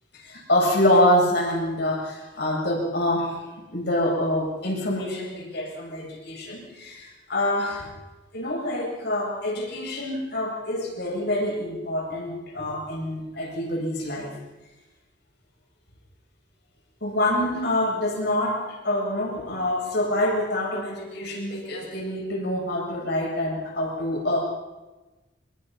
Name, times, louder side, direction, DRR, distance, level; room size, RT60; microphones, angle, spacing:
voice 1, 0.1-3.4 3.7-7.9 8.3-14.4 17.0-24.4, left 1 dB, 60° left, -1 dB, 7.9 m, -26 dB
25.5 x 23.0 x 5.8 m, 1.1 s
head